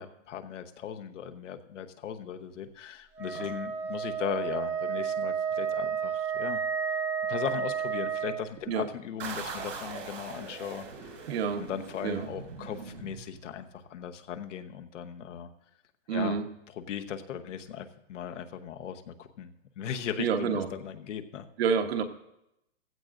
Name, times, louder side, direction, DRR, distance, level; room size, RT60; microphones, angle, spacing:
voice 1, 0.0-6.6 7.3-11.2 11.6-15.5 16.1-16.4 16.7-21.5, left 8 dB, 75° left, 7 dB, 1.1 m, -38 dB
Wind instrument woodwind instrument, 3.1-8.5, right 7 dB, 5° right, 0.6 m, -31 dB
sound 1, 9.2-13.7, right 4 dB, 85° right, 4.7 m, -41 dB
voice 2, 11.3-11.6 12.0-12.3 16.1-16.4 20.2-20.7 21.6-22.0, right 6 dB, 55° right, 6 dB, 1.1 m, -28 dB
15.5 x 14.5 x 2.6 m, 0.85 s
hypercardioid pair, 160°, 37 cm